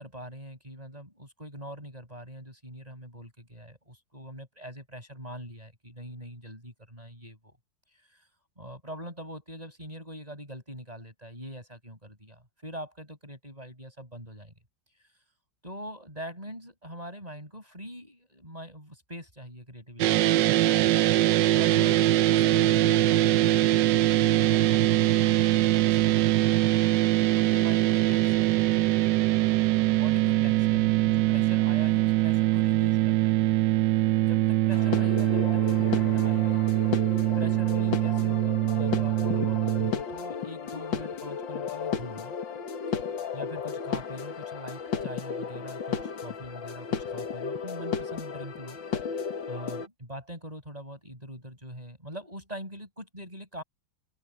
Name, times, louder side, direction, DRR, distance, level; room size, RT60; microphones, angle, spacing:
voice 1, 0.0-7.6 8.1-8.3 8.6-14.5 15.6-20.5 21.6-26.4 27.3-29.0 29.9-33.7 34.2-36.8 37.3-42.4 43.3-48.8 49.5-53.6, equal, 15° right, 7.9 m, -43 dB
sound 1, 20.0-39.9, right 15 dB, 70° right, 1.2 m, -23 dB
sound 2, 34.7-49.9, left 6 dB, 65° left, 2.2 m, -34 dB
open air
omnidirectional pair, 2.3 m